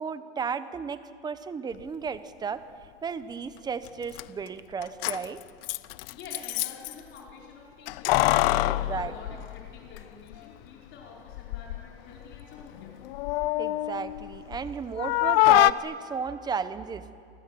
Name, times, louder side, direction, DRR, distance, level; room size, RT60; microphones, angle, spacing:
voice 1, 0.0-2.6 3.0-5.4 8.7-9.1 13.6-17.0, right 6 dB, 10° right, 13 dB, 0.8 m, -34 dB
Keys jangling, 3.9-4.0 4.1-4.2 4.8-6.9 7.9-10.0 10.3-10.4 11.3-11.8 12.2-14.7 15.0-15.7, left 18 dB, 60° left, 0.7 m, -25 dB
voice 2, 6.1-12.9, left 4 dB, 35° left, -2 dB, 4.8 m, -47 dB
29.0 x 24.5 x 7.7 m, 2.4 s
supercardioid pair, 155°, 33 cm